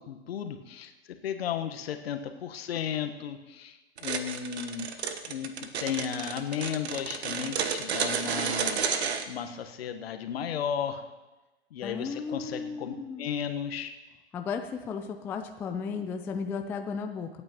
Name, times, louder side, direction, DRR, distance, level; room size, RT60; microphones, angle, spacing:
voice 1, 0.1-0.9 1.2-4.9 5.2-5.5 5.8-11.0 11.7-13.9, left 8 dB, 60° left, 7 dB, 1.3 m, -34 dB
sound 1, 4.0-9.3, right 6 dB, 65° right, 1.2 m, -31 dB
voice 2, 11.8-13.3 14.3-17.3, left 5 dB, 5° left, 6 dB, 0.3 m, -35 dB
25.5 x 8.8 x 3.0 m, 1.1 s
figure-of-eight pair, 100°, 34 cm